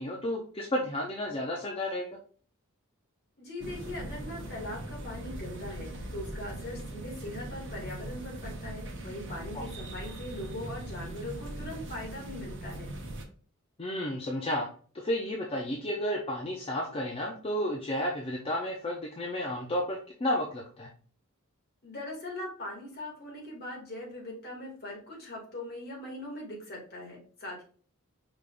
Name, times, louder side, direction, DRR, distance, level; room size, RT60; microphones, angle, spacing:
voice 1, 0.0-2.2 9.5-9.7 13.8-14.7 14.9-20.9, left 1 dB, 25° left, 0 dB, 0.6 m, -32 dB
voice 2, 3.4-12.9 21.8-27.6, left 1 dB, 50° left, -2 dB, 2.1 m, -41 dB
sound 1, 3.6-13.2, right 1 dB, 60° right, 0.9 m, -40 dB
5.2 x 3.4 x 2.5 m, 0.43 s
head